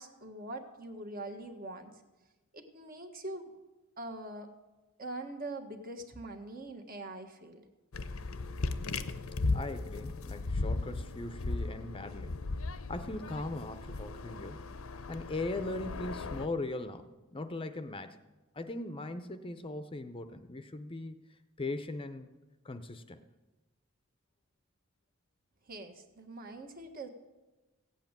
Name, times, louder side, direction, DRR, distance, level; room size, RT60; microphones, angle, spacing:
voice 1, 0.0-2.0 2.5-3.5 4.0-4.5 5.0-7.6 25.7-27.1, right 2 dB, 45° right, 5 dB, 1.6 m, -43 dB
sound 1, 7.9-16.5, left 3 dB, 85° left, 0.8 m, -36 dB
voice 2, 9.5-12.4 12.9-14.6 15.1-18.2 18.5-21.2 21.6-22.3 22.6-23.2, left 2 dB, 25° left, 9 dB, 0.7 m, -39 dB
16.0 x 8.2 x 8.9 m, 1.2 s
head